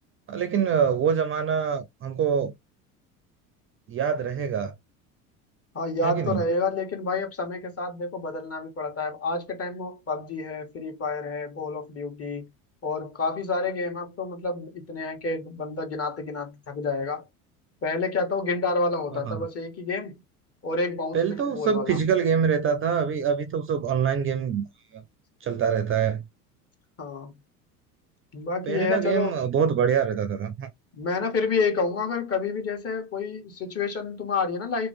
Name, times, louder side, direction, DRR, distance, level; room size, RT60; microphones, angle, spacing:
voice 1, 0.3-2.5 3.9-4.7 6.0-6.4 19.3-19.4 21.1-24.6 24.9-25.0 25.4-26.2 28.7-30.7, right 7 dB, 30° right, 0.5 m, -25 dB
voice 2, 5.7-12.5 12.8-17.2 17.8-20.2 20.6-22.0 27.0-27.4 28.3-29.4 30.9-34.9, left 3 dB, 30° left, 1.5 m, -29 dB
3.0 x 2.7 x 3.3 m
hypercardioid pair, 75°, 45 cm